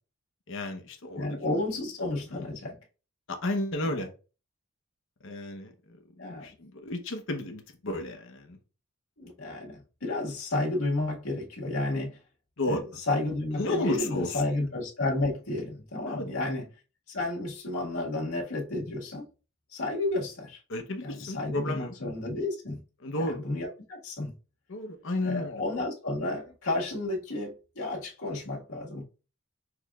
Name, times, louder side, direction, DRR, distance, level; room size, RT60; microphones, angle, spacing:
voice 1, 0.5-1.4 2.3-2.5 3.3-4.1 5.2-8.6 12.6-12.8 13.5-14.4 16.1-16.4 20.7-21.9 23.0-23.4 24.7-25.6, left 1 dB, 60° left, 0.9 m, -33 dB
voice 2, 1.1-2.8 3.8-4.0 6.2-6.5 9.2-12.2 12.7-16.7 17.1-19.3 19.7-20.6 21.0-22.8 23.1-24.3 25.2-29.0, left 2 dB, 80° left, 1.8 m, -32 dB
6.3 x 3.1 x 2.4 m
head